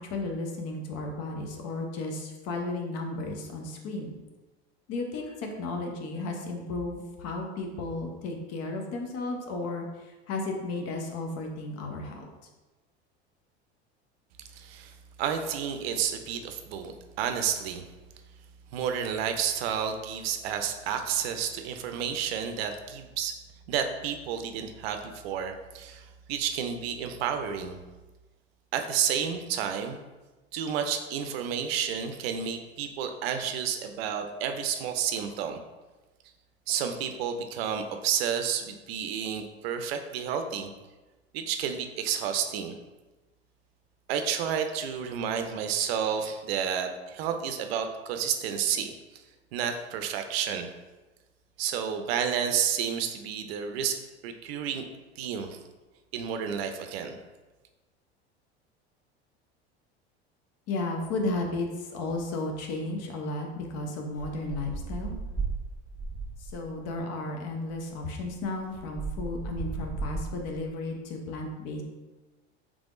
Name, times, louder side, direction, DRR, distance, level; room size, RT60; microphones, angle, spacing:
voice 1, 0.0-4.1 4.9-12.2 60.7-65.2 66.4-71.8, left 2 dB, 50° left, 2 dB, 0.8 m, -34 dB
voice 2, 14.5-17.8 18.7-23.4 23.7-27.8 28.7-30.0 30.5-35.6 36.7-40.7 41.3-42.7 44.1-49.2 49.5-50.7 51.6-54.8 55.2-55.6 56.1-57.2, right 8 dB, 65° right, 7 dB, 0.5 m, -31 dB
sound 1, 64.1-66.7 67.7-67.8 68.1-70.7, right 4 dB, 15° left, 1.4 m, -36 dB
3.4 x 3.4 x 2.5 m, 1.2 s
hypercardioid pair, 80°, 32 cm